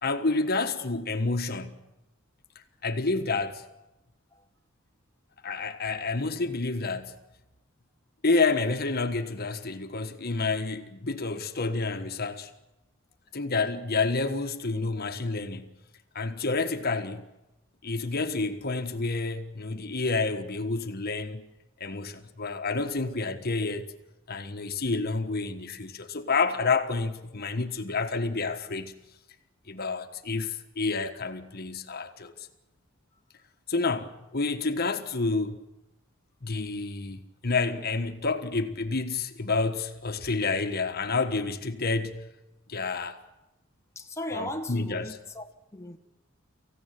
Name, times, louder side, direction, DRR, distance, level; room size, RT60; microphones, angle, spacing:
voice 1, 0.0-1.8 2.8-3.6 5.4-7.2 8.2-12.5 13.3-15.8 16.1-17.3 17.8-21.4 21.8-23.9 24.3-29.0 29.7-32.5 33.7-35.6 36.4-42.3 42.7-43.2 44.3-45.1, left 3 dB, 50° left, 1.5 m, -29 dB
voice 2, 43.9-46.0, left 1 dB, 15° left, 1.3 m, -38 dB
24.5 x 15.5 x 9.2 m
head